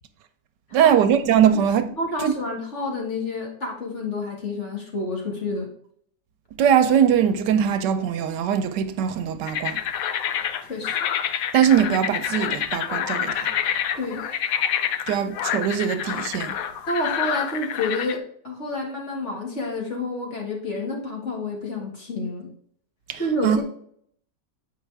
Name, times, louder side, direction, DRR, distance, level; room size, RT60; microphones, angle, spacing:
voice 1, 0.7-1.9 2.2-2.3 6.6-9.8 11.5-13.5 15.1-16.6 23.1-23.6, right 8 dB, 80° right, 1.3 m, -21 dB
voice 2, 2.0-5.7 10.7-11.0 14.0-14.2 16.9-22.5 23.2-23.6, left 2 dB, 45° left, 2.0 m, -29 dB
sound 1, 9.5-18.2, left 9 dB, 65° left, 0.9 m, -27 dB
8.1 x 5.1 x 3.4 m
omnidirectional pair, 1.8 m